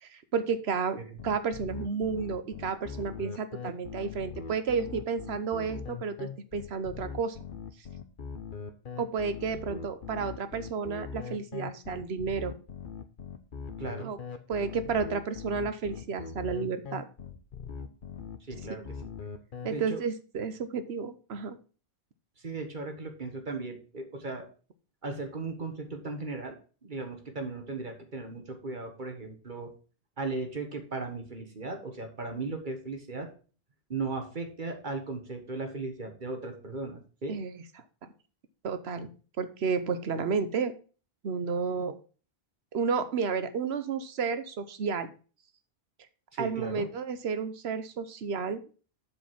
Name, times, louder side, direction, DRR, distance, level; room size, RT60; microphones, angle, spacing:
voice 1, 0.0-1.0 1.2-7.4 9.0-12.5 14.0-14.2 14.5-17.0 18.8-18.9 19.6-21.6 37.3-37.6 38.0-38.1 38.6-39.1 39.4-40.7 41.2-41.9 42.7-45.1 46.4-48.6, right 5 dB, 90° right, 11 dB, 1.2 m, -31 dB
sound 1, 1.2-19.7, left 6 dB, 55° left, 1.0 m, -41 dB
voice 2, 13.8-14.1 18.5-19.0 19.7-20.0 22.4-24.4 25.0-26.6 26.8-29.7 30.2-33.3 33.9-37.4 46.3-46.9, right 3 dB, 50° right, 5 dB, 1.6 m, -37 dB
7.8 x 5.0 x 5.8 m, 0.37 s
omnidirectional pair, 1.0 m